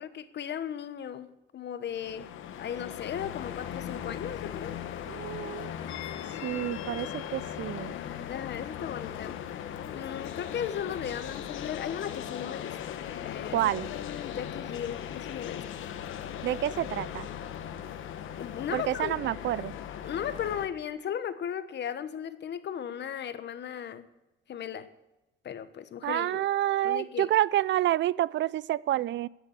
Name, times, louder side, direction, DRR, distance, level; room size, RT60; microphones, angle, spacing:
voice 1, 0.0-2.3 2.5-4.7 8.3-9.4 9.9-15.6 18.4-19.1 20.0-24.0 24.5-24.9 25.4-26.5 26.8-27.3, left 9 dB, 60° left, 12 dB, 1.2 m, -36 dB
sound 1, 1.9-20.7, left 10 dB, 80° left, 1.2 m, -38 dB
voice 2, 5.1-5.7 6.4-7.9 13.5-13.9 16.4-17.3 18.7-19.7 26.0-29.3, right 13 dB, 65° right, 21 dB, 0.4 m, -28 dB
14.0 x 8.4 x 8.4 m, 0.99 s
cardioid pair, 90°, 20 cm